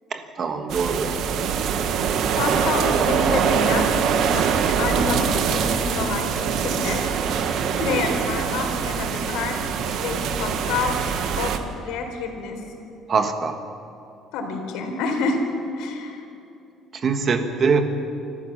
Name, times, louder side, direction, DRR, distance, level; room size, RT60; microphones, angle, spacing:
voice 1, 0.1-1.2 2.5-2.6 13.1-13.6 16.9-17.8, right 5 dB, 30° right, 7 dB, 1.4 m, -23 dB
sound 1, 0.7-11.6, right 7 dB, 55° right, 1.2 m, -23 dB
voice 2, 2.0-7.1 7.4-7.5 7.8-9.6 9.9-11.0 11.3-12.6 14.3-15.4 15.7-16.2, left 4 dB, 90° left, 3 dB, 3.9 m, -28 dB
25.5 x 14.0 x 7.1 m, 2.7 s
cardioid pair, 180°, 0 cm